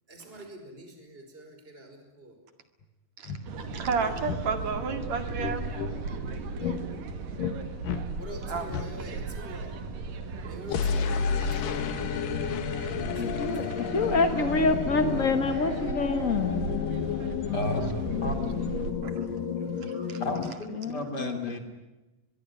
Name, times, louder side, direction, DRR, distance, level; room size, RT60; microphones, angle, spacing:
voice 1, 0.1-2.4 8.2-9.8 10.4-11.9 13.2-14.2, right 1 dB, 15° right, 4 dB, 5.3 m, -45 dB
sound 1, 2.8-2.9 3.2-3.4 4.2-4.4 5.4-5.9 6.6-6.8 7.4-7.6 7.8-8.0 8.7-8.9 10.7-20.5, left 7 dB, 90° left, 3.3 m, -31 dB
voice 2, 3.2-5.7 7.4-7.5 8.5-8.7 10.3-10.6 12.8-12.9 13.3-13.5 19.0-19.3 19.8-20.2, right 5 dB, 60° right, 8 dB, 3.3 m, -33 dB
sound 2, 3.5-18.9, right 4 dB, 90° right, 3.9 m, -37 dB
voice 3, 13.2-16.7 20.8-21.5, left 3 dB, 55° left, 8 dB, 0.9 m, -27 dB
voice 4, 17.5-17.9 18.2-18.4 20.2-21.6, left 1 dB, 30° left, 6 dB, 3.6 m, -32 dB
23.5 x 23.0 x 9.8 m, 1.1 s
omnidirectional pair, 3.7 m